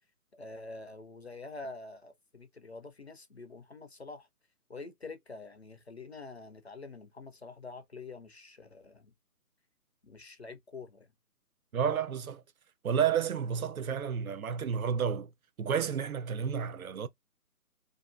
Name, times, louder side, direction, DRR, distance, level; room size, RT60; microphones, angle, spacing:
voice 1, 0.3-4.3 4.7-9.1 10.0-11.1, left 3 dB, 45° left, 0.4 m, -46 dB
voice 2, 11.7-12.4 12.8-15.3 15.6-17.1, right 7 dB, 65° right, 0.5 m, -31 dB
2.7 x 2.3 x 2.3 m
figure-of-eight pair, 150°, 46 cm